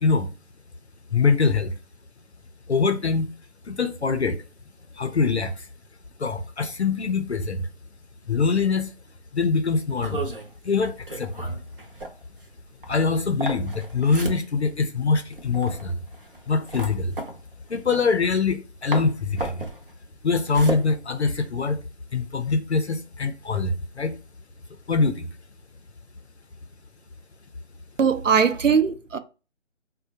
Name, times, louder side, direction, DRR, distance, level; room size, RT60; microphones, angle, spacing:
voice 1, 1.1-1.7 2.7-3.3 3.7-4.4 4.9-5.7 6.2-7.7 8.3-8.9 9.3-10.3 10.6-11.6 12.9-16.0 16.5-17.2 17.7-19.7 20.2-21.8 22.1-24.1 24.9-25.3, left 4 dB, 60° left, 0.5 m, -23 dB
sound 1, 10.0-18.6 18.9-21.8, right 2 dB, 45° right, 0.7 m, -35 dB
voice 2, 28.0-29.2, right 6 dB, 90° right, 0.5 m, -20 dB
4.1 x 2.1 x 2.6 m
figure-of-eight pair, 155°, 37 cm